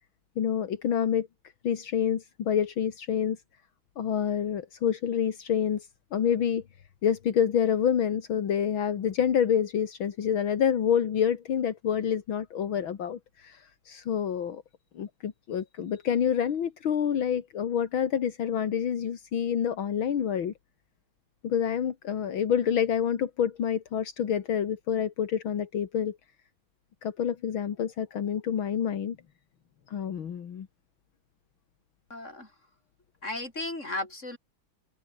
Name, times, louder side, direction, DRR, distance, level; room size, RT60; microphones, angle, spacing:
voice 1, 0.4-1.3 1.6-3.4 4.0-6.6 7.0-14.6 15.0-20.5 21.4-26.2 27.0-29.2 29.9-30.7, left 8 dB, 75° left, 2.4 m, -27 dB
voice 2, 32.1-32.5 33.2-34.4, left 2 dB, 35° left, 6.7 m, -35 dB
open air
omnidirectional pair, 2.2 m